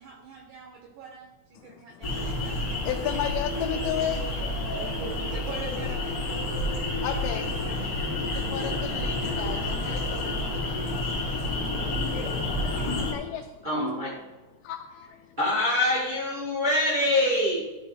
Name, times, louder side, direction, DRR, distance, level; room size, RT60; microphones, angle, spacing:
voice 1, 0.0-2.6 4.6-6.5 7.0-7.2 7.6-7.9, right 5 dB, 75° right, 1 dB, 1.9 m, -43 dB
voice 2, 1.6-2.2 2.9-4.2 7.0-7.4 7.9-11.1 12.1-12.3 13.0-13.7 14.6-15.2, left 10 dB, 90° left, 3 dB, 2.6 m, -34 dB
sound 1, 2.0-13.1, left 2 dB, 30° left, 1.9 m, -29 dB
voice 3, 13.6-14.2 15.4-17.6, left 1 dB, 40° right, -7 dB, 0.6 m, -25 dB
13.0 x 4.5 x 4.2 m, 1.2 s
omnidirectional pair, 4.4 m